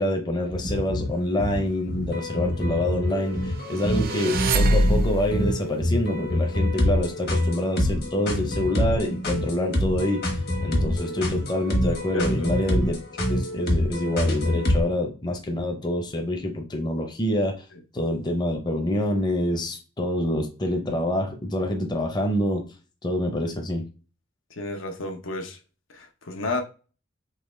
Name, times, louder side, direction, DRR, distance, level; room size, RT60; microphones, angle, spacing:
voice 1, 0.0-10.2 10.6-13.0 13.3-17.6 17.9-22.7 23.0-23.9, left 1 dB, 20° left, 0.6 m, -26 dB
sound 1, 0.5-14.8, left 1 dB, 55° left, 1.1 m, -26 dB
sound 2, 3.7-5.4, right 1 dB, 50° right, 0.4 m, -23 dB
voice 2, 12.1-12.5 17.7-17.8 24.5-25.6 25.9-26.6, left 2 dB, 85° left, 0.8 m, -32 dB
3.8 x 2.9 x 3.2 m
head